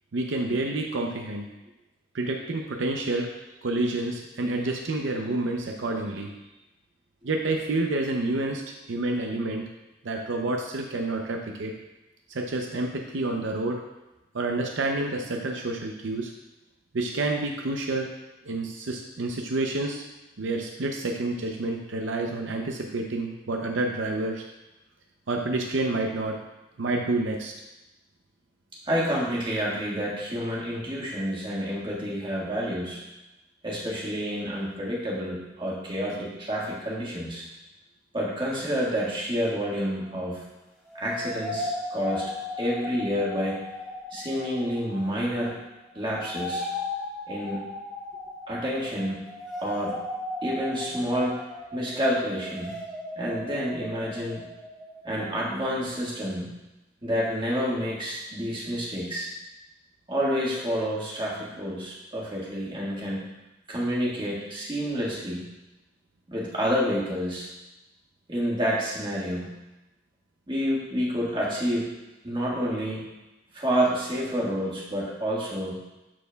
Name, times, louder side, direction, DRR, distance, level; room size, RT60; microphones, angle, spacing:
voice 1, 0.1-1.5 2.1-3.3 3.6-6.3 7.2-8.6 8.9-9.6 10.0-11.8 12.3-13.8 14.3-16.3 16.9-18.1 18.5-20.0 20.4-24.4 25.3-26.4 26.8-27.5, right 2 dB, 65° right, 2 dB, 0.6 m, -28 dB
voice 2, 28.9-33.0 33.6-37.5 38.1-40.4 41.0-43.6 44.1-45.6 45.9-46.7 47.3-47.6 48.5-49.2 49.6-50.0 50.4-51.4 51.7-52.8 53.2-54.4 55.0-56.5 57.0-59.3 60.1-63.2 63.7-65.5 66.3-67.5 68.3-69.5 70.5-71.9 72.2-73.0 73.5-75.8, equal, 25° right, -5 dB, 1.5 m, -29 dB
Jules' Musical Saw no voices, 40.0-40.3 40.8-45.6 45.9-55.4, left 2 dB, ahead, 1.3 m, -37 dB
12.0 x 4.2 x 2.3 m, 1.0 s
head